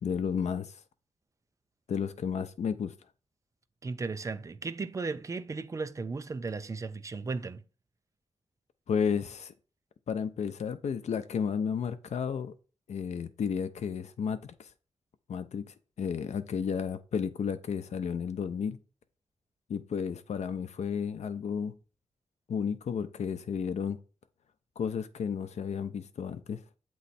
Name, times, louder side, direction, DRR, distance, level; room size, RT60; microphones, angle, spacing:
voice 1, 0.0-0.7 1.9-2.9 8.9-9.5 10.1-12.5 12.9-14.5 15.3-15.7 16.0-18.8 19.7-21.7 22.5-24.0 24.8-26.6, left 7 dB, 75° left, 0.6 m, -32 dB
voice 2, 3.8-7.6, right 4 dB, 25° right, 0.4 m, -35 dB
7.8 x 3.1 x 4.1 m
wide cardioid pair, 150°, 12 cm